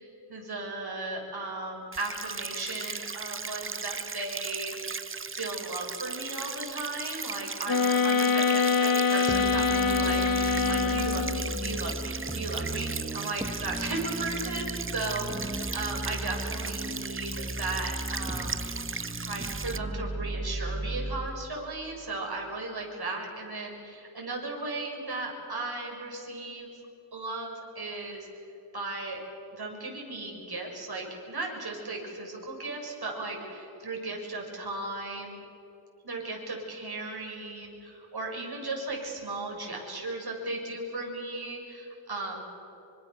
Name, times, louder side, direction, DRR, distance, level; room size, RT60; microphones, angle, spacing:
voice 1, 0.0-4.9 5.3-18.9 19.2-26.7 27.1-28.4 28.7-29.2 29.5-35.4 36.0-42.4, right 2 dB, 50° right, 0 dB, 6.7 m, -36 dB
sound 1, 1.9-19.8, right 5 dB, 25° right, 0.7 m, -37 dB
sound 2, 7.7-11.6, left 5 dB, 45° left, 1.0 m, -25 dB
sound 3, 9.3-21.3, right 1 dB, 10° right, 1.9 m, -35 dB
26.0 x 25.0 x 6.8 m, 3.0 s
wide cardioid pair, 85°, 47 cm